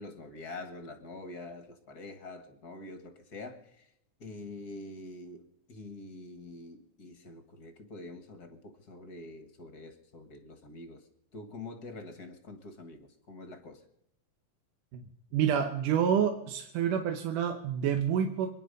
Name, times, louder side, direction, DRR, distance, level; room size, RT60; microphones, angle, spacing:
voice 1, 0.0-3.9 4.2-13.8, left 2 dB, 40° left, 7 dB, 1.5 m, -46 dB
voice 2, 15.3-18.5, right 8 dB, 85° right, 5 dB, 2.6 m, -28 dB
26.0 x 10.0 x 5.3 m, 0.82 s
omnidirectional pair, 3.6 m